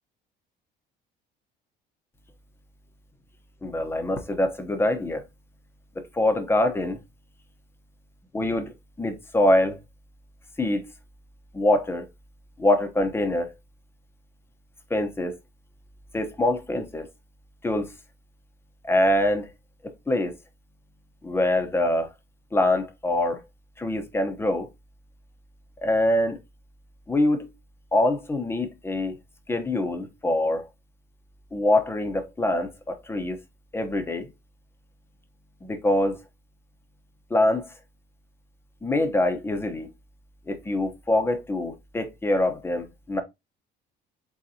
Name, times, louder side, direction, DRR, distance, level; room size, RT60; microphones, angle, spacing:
voice 1, 3.6-5.2 6.1-7.0 8.3-9.8 10.6-10.8 11.5-12.1 12.6-13.5 14.9-15.4 16.1-17.1 17.6-17.9 18.8-19.5 20.1-20.4 21.2-22.1 22.5-23.4 23.8-24.7 25.8-26.4 27.1-27.5 27.9-29.2 29.5-30.7 31.5-33.4 33.7-34.3 35.6-36.2 37.3-37.7 38.8-39.9 40.5-43.2, left 1 dB, 15° left, 1.0 m, -24 dB
4.0 x 4.0 x 2.8 m
cardioid pair, 120°, 18 cm